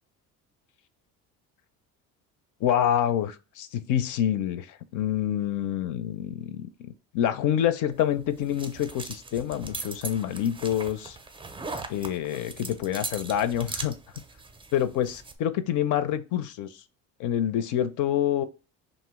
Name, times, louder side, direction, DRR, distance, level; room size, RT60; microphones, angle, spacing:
voice 1, 2.6-11.2 11.9-14.0 14.7-16.7 17.2-18.5, left 10 dB, 60° left, 0.5 m, -27 dB
sound 1, 7.9-15.4, right 3 dB, 15° right, 0.4 m, -40 dB
2.7 x 2.1 x 3.4 m
supercardioid pair, 90°, 35 cm